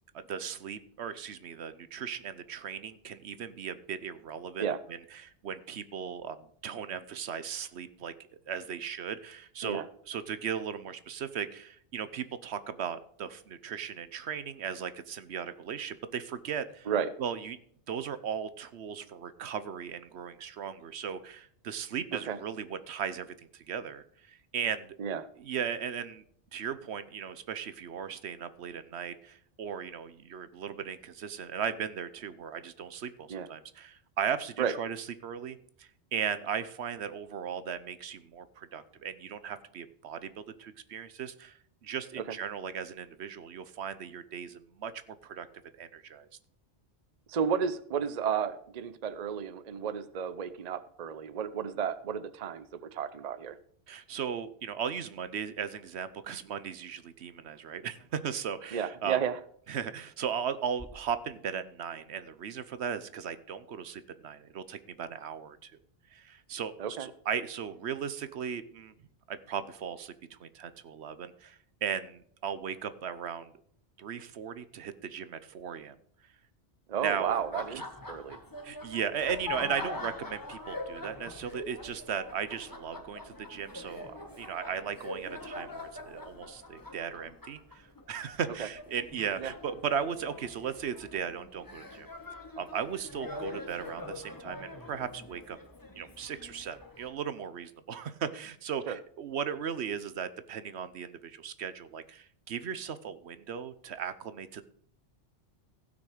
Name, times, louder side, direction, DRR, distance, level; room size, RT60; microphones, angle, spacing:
voice 1, 0.1-4.6 4.9-8.1 8.5-16.9 17.2-17.6 17.9-24.9 25.4-26.2 26.5-45.5 45.8-46.3 53.9-59.2 59.7-65.7 66.1-66.7 67.0-68.9 69.3-73.5 74.0-75.9 77.0-77.4 78.6-92.1 92.6-95.6 96.0-104.6, right 7 dB, 75° right, 13 dB, 1.1 m, -37 dB
voice 2, 47.3-53.6 58.7-59.4 66.8-67.1 76.9-78.4 88.6-88.7 89.4-89.5 93.4-93.6 98.9-99.0, right 7 dB, 45° right, 13 dB, 0.7 m, -32 dB
sound 1, 60.8-62.9, equal, ahead, 0.8 m, -54 dB
Laughter, 77.2-97.1, left 2 dB, 20° left, 1.3 m, -44 dB
16.0 x 6.1 x 4.9 m, 0.62 s
omnidirectional pair, 1.1 m